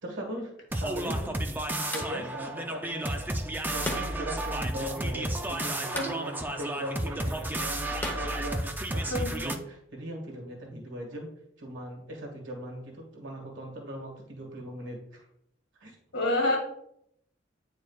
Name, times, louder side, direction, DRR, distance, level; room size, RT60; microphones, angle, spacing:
voice 1, 0.0-1.3 1.9-3.4 3.7-11.3 11.6-15.2 15.7-15.9, equal, 70° right, 0 dB, 1.8 m, -39 dB
sound 1, 0.7-9.2, left 1 dB, 10° left, 1.0 m, -43 dB
sound 2, 0.7-9.6, right 1 dB, 10° right, 0.5 m, -32 dB
voice 2, 9.1-9.4 16.1-16.6, left 1 dB, 80° left, 1 dB, 1.9 m, -28 dB
9.6 x 4.6 x 2.4 m, 0.74 s
head